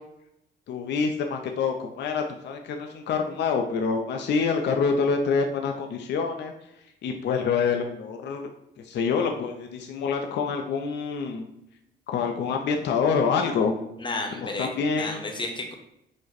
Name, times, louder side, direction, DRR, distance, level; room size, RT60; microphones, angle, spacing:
voice 1, 0.7-6.5 7.0-8.5 8.8-11.4 12.1-13.7 14.4-15.3, left 5 dB, 60° left, 3 dB, 0.5 m, -26 dB
voice 2, 14.0-15.7, left 2 dB, 25° left, 3 dB, 0.9 m, -32 dB
5.1 x 2.1 x 4.1 m, 0.80 s
cardioid pair, 90°, 20 cm